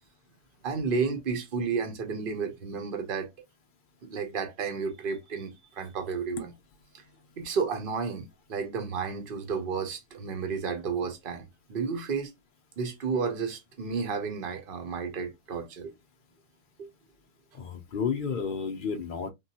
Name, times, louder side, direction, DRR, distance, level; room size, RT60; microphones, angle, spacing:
voice 1, 0.6-3.3 4.0-6.5 6.9-7.0 7.4-12.3 12.8-15.9 16.8-16.9 18.1-18.2, right 5 dB, 50° right, 0.7 m, -32 dB
voice 2, 17.5-19.3, left 6 dB, 65° left, 0.5 m, -31 dB
3.6 x 2.3 x 2.7 m
omnidirectional pair, 1.7 m